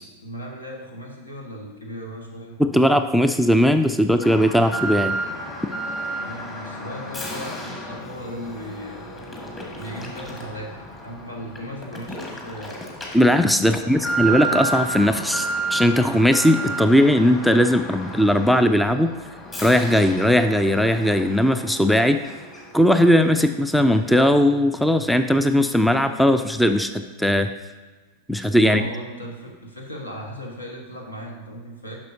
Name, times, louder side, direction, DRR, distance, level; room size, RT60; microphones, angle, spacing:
voice 1, 0.2-2.6 6.2-9.2 9.7-12.8 13.6-14.1 28.5-32.0, equal, 80° left, 1 dB, 1.3 m, -37 dB
voice 2, 2.6-5.2 13.1-19.1 19.6-22.2 22.7-27.5 28.3-28.8, equal, ahead, 8 dB, 0.3 m, -18 dB
Alarm, 4.2-22.9 23.2-23.3 23.9-24.0, right 2 dB, 20° left, 1.6 m, -32 dB
10.5 x 6.2 x 2.7 m, 1.3 s
figure-of-eight pair, 90°, 0 cm